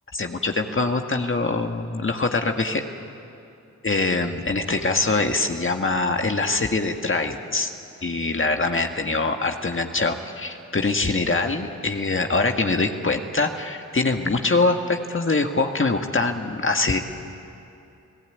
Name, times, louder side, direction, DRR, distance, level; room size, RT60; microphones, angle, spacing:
voice 1, 0.1-2.8 3.8-7.7 8.0-17.0, left 3 dB, 40° left, 4 dB, 1.8 m, -23 dB
29.5 x 17.0 x 9.3 m, 2.8 s
cardioid pair, 45°, 32 cm